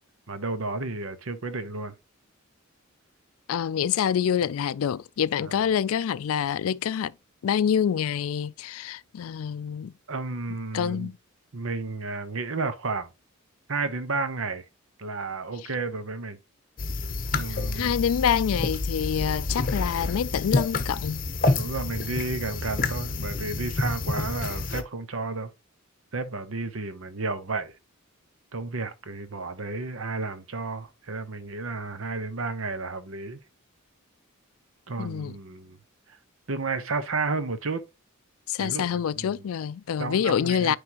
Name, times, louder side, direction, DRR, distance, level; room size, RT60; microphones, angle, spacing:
voice 1, 0.3-1.9 5.4-5.7 10.1-11.1 11.5-13.1 13.7-14.7 15.0-16.4 17.3-17.9 19.1-19.4 21.6-25.5 26.1-27.7 28.5-33.4 34.9-35.8 36.1-36.2 36.5-37.8 38.6-39.4 40.0-40.8, right 3 dB, 70° right, 0.9 m, -32 dB
voice 2, 3.5-7.1 7.4-9.9 10.7-11.1 17.7-21.3 35.0-35.3 38.5-40.8, left 8 dB, 75° left, 0.3 m, -26 dB
sound 1, 16.8-24.8, left 3 dB, 40° left, 0.8 m, -28 dB
9.6 x 3.5 x 2.9 m
head